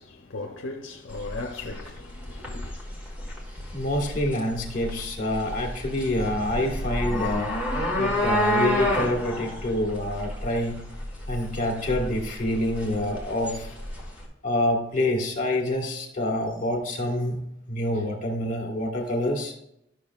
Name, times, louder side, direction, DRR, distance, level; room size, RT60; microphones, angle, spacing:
voice 1, 0.0-2.8, left 3 dB, 65° left, 0.6 m, -37 dB
sound 1, 1.1-14.2, equal, 5° right, 1.4 m, -30 dB
voice 2, 3.7-7.5 8.0-10.8 11.3-13.7 14.4-17.4 17.7-19.5, left 1 dB, 40° left, 1.7 m, -27 dB
12.0 x 6.1 x 2.4 m
head